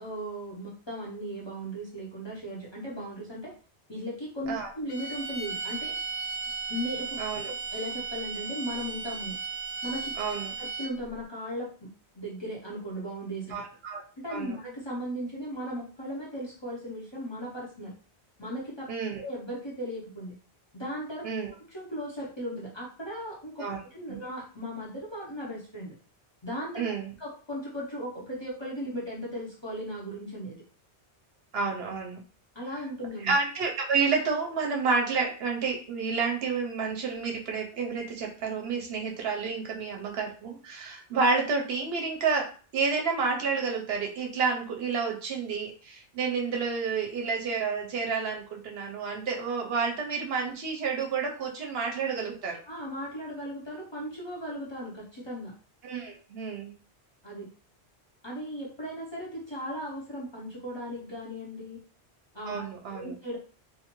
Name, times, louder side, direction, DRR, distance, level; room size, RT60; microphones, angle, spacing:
voice 1, 0.0-3.5 3.9-6.0 6.7-9.4 9.8-10.1 10.6-11.9 12.1-13.5 14.2-17.9 18.4-18.9 19.2-20.3 20.7-21.3 21.7-23.7 23.9-26.0 26.4-26.9 27.2-30.6 32.5-33.3 52.7-55.5 57.2-57.5 58.2-61.8 62.3-63.4, equal, 30° left, -5 dB, 0.7 m, -37 dB
sound 1, 4.9-11.1, right 5 dB, 90° left, 0.9 m, -35 dB
voice 2, 7.2-7.5 10.2-10.5 13.5-14.0 14.3-14.6 18.9-19.2 21.2-21.5 23.6-23.8 24.1-24.2 26.8-27.1 31.5-32.2 33.2-52.6 55.8-56.7 62.4-63.1, right 5 dB, 70° right, 1 dB, 0.8 m, -30 dB
2.6 x 2.4 x 2.9 m, 0.39 s
omnidirectional pair, 1.1 m